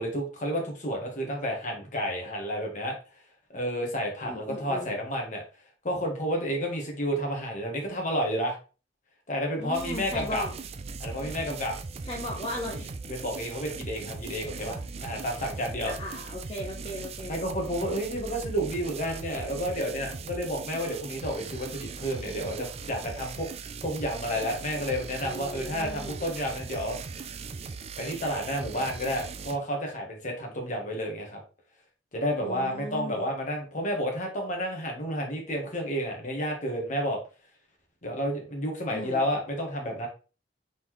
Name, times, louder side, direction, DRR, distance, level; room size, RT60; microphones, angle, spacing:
voice 1, 0.0-2.9 3.5-5.4 5.8-8.6 9.3-10.4 11.0-11.7 13.1-15.9 17.3-23.5 23.8-27.0 28.0-31.4 32.1-37.2 38.0-40.1, equal, 45° left, 2 dB, 1.4 m, -31 dB
voice 2, 4.2-4.9 9.6-10.5 12.0-12.9 14.6-14.8 15.6-17.4 25.2-26.2 32.4-33.3 38.9-39.2, left 1 dB, 30° left, -3 dB, 0.8 m, -37 dB
sound 1, 9.7-29.6, right 4 dB, 35° right, 0.4 m, -39 dB
sound 2, 10.7-20.4, right 1 dB, 5° right, 1.3 m, -52 dB
4.1 x 3.7 x 3.1 m, 0.35 s
head